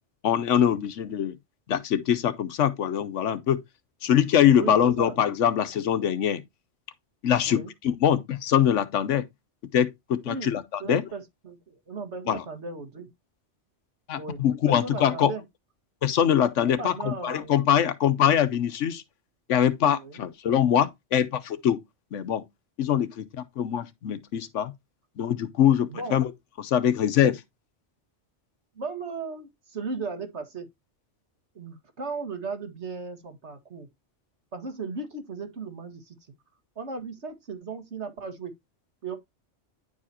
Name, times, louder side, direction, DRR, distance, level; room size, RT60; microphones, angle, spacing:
voice 1, 0.2-1.3 1.7-3.6 4.0-6.4 7.2-9.2 9.7-11.0 12.3-12.4 14.1-15.3 16.0-19.0 19.5-21.8 22.1-22.4 22.8-23.3 23.6-24.7 25.2-26.3 26.6-27.4, left 9 dB, 90° left, 1.2 m, -23 dB
voice 2, 4.5-5.2 7.5-7.7 10.3-13.1 14.2-15.4 16.6-17.7 20.0-20.2 25.9-26.2 28.8-30.7 31.6-33.9 34.5-36.2 36.8-38.5 39.0-39.2, right 4 dB, 70° right, 1.9 m, -36 dB
10.5 x 4.9 x 2.7 m
omnidirectional pair, 1.2 m